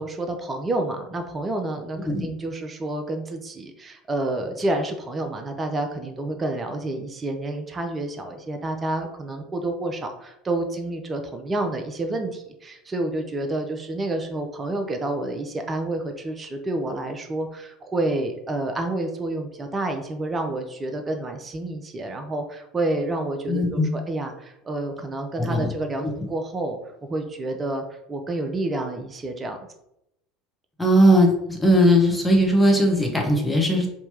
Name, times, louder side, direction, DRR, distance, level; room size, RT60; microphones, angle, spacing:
voice 1, 0.0-29.6, right 2 dB, 25° right, 5 dB, 0.5 m, -29 dB
voice 2, 23.5-23.9 25.4-25.7 26.0-26.1 30.8-33.9, equal, 5° left, 0 dB, 0.9 m, -19 dB
3.3 x 2.8 x 2.9 m, 0.83 s
hypercardioid pair, 70°, 0 cm